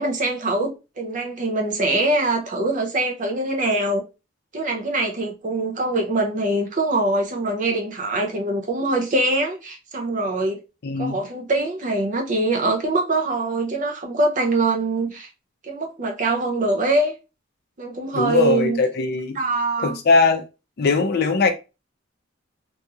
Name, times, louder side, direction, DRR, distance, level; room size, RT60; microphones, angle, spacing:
voice 1, 0.0-4.0 4.5-10.6 11.0-15.3 15.6-17.2 17.8-18.8 19.3-20.0, right 2 dB, 40° right, 0.6 m, -23 dB
voice 2, 10.8-11.2 18.1-19.4 19.8-20.4 20.8-21.5, left 4 dB, 55° left, 0.5 m, -20 dB
2.9 x 2.7 x 2.3 m
head